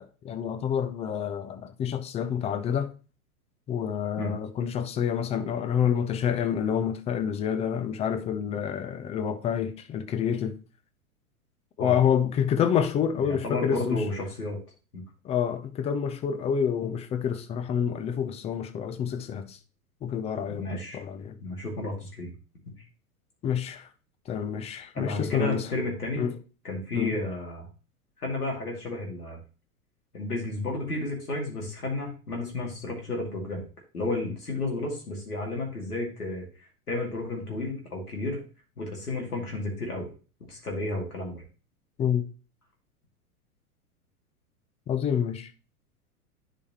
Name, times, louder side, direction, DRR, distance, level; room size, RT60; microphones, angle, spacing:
voice 1, 0.0-2.9 3.7-10.6 11.8-14.0 15.2-19.6 20.0-21.4 23.4-23.9 24.3-25.6 26.2-26.4 26.9-27.2 42.0-42.3 44.9-45.5, left 8 dB, 15° left, 0.5 m, -28 dB
voice 2, 13.3-14.6 14.9-15.0 20.6-21.0 21.4-22.3 24.9-26.2 26.6-27.7 28.2-29.4 30.1-33.7 33.9-38.4 38.8-40.1 40.5-41.4, left 2 dB, 80° left, 2.5 m, -32 dB
10.5 x 5.1 x 2.9 m
figure-of-eight pair, 95°, 45 cm